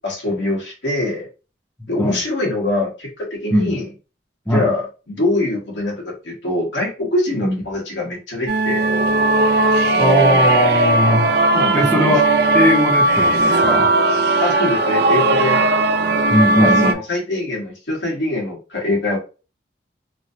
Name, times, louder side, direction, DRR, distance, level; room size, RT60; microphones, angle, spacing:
voice 1, 0.0-1.3 1.9-3.9 4.5-8.8 11.5-12.2 14.4-15.6 16.6-19.2, left 2 dB, 80° left, -2 dB, 1.3 m, -23 dB
sound 1, 8.5-16.9, right 2 dB, 55° right, 0.3 m, -17 dB
voice 2, 10.0-11.3 11.7-12.3 12.5-13.9 16.3-16.9, equal, 10° left, -2 dB, 0.6 m, -18 dB
3.0 x 2.7 x 2.6 m, 0.33 s
head